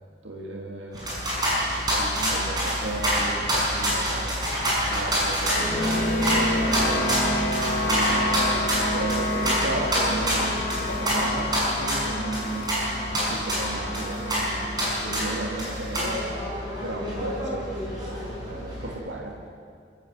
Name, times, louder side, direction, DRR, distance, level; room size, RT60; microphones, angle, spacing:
voice 1, 0.2-1.1 1.9-7.3 7.8-10.6 10.9-12.7 13.2-14.7 15.0-16.2 16.8-17.7 18.4-19.4, right 2 dB, 65° right, -1 dB, 2.5 m, -35 dB
sound 1, 0.9-18.9, equal, 20° right, 6.6 m, -27 dB
sound 2, 5.5-5.6 6.3-6.5 7.3-7.4 8.2-8.4 9.8-9.9 10.8-11.0, left 2 dB, 75° left, 2.5 m, -38 dB
sound 3, 5.5-15.6, left 1 dB, 40° left, 5.3 m, -29 dB
26.0 x 14.5 x 7.8 m, 2.2 s
head